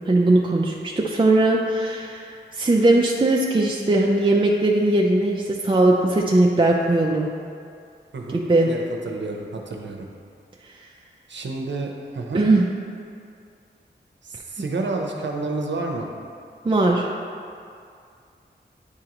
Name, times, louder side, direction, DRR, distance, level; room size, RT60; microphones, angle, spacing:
voice 1, 0.0-7.3 8.3-8.7 12.3-12.6 16.6-17.1, right 2 dB, 25° right, -2 dB, 0.5 m, -19 dB
voice 2, 8.1-10.1 11.3-12.4 14.2-16.1, right 3 dB, 75° right, 2 dB, 0.7 m, -30 dB
9.6 x 3.7 x 3.0 m, 2.4 s
wide cardioid pair, 60°, 19 cm